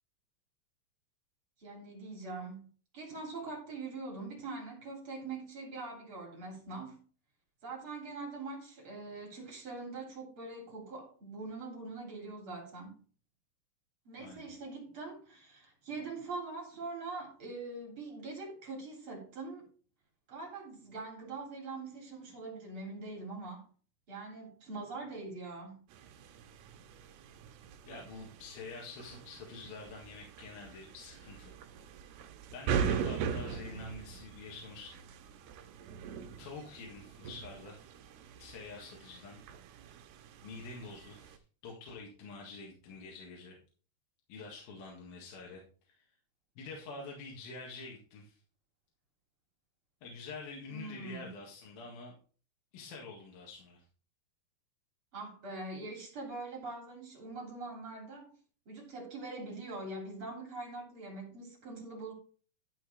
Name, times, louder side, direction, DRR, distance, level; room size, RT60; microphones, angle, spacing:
voice 1, 1.6-2.7 2.9-7.0 7.6-13.0 14.1-19.7 20.3-23.7 24.1-25.8 50.7-51.3 55.1-58.3 58.7-62.1, right 3 dB, 35° right, 3.5 m, -43 dB
sound 1, 25.9-41.4, right 7 dB, 80° right, 2.7 m, -41 dB
voice 2, 27.9-31.5 32.5-35.0 36.4-37.9 38.4-39.4 40.4-43.6 44.3-45.6 46.0-46.1 46.6-48.4 50.0-52.1 52.7-53.8, left 3 dB, 65° left, 3.4 m, -47 dB
12.5 x 4.6 x 4.8 m
omnidirectional pair, 4.8 m